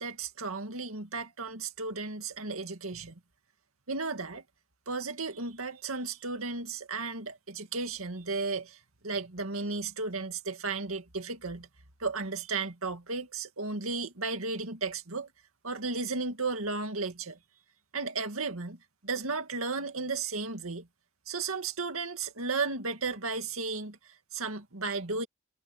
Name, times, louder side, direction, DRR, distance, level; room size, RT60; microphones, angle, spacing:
voice 1, 0.0-3.2 3.9-4.4 4.9-8.8 9.0-11.7 12.0-15.3 15.6-17.4 17.9-20.9 21.3-24.0 24.3-25.3, right 4 dB, 80° right, 2.2 m, -34 dB
head